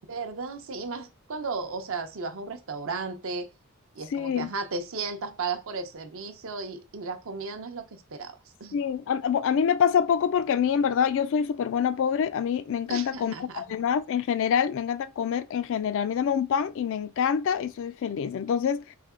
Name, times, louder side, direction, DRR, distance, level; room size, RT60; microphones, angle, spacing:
voice 1, 0.1-3.5 3.9-8.8 12.9-13.7, right 4 dB, 65° right, 0.7 m, -35 dB
voice 2, 4.1-4.5 8.7-19.0, left 7 dB, 60° left, 0.3 m, -26 dB
3.4 x 2.8 x 3.6 m
head